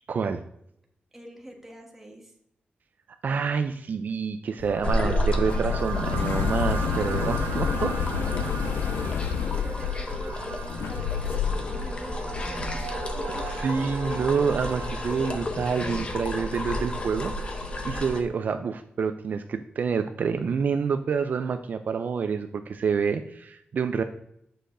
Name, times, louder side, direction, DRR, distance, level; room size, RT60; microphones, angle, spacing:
voice 1, 0.1-0.4 3.2-7.9 13.6-24.0, right 6 dB, 55° right, 8 dB, 0.3 m, -28 dB
voice 2, 1.1-2.3 6.8-13.4, right 1 dB, 10° right, 0 dB, 1.2 m, -44 dB
sound 1, 4.6-11.9, left 7 dB, 80° left, 0.3 m, -29 dB
sound 2, 4.7-15.5, right 5 dB, 90° right, 0.7 m, -39 dB
sound 3, 4.8-18.2, left 1 dB, 30° left, 0.7 m, -32 dB
7.6 x 6.4 x 2.6 m, 0.75 s
wide cardioid pair, 165°, 4 cm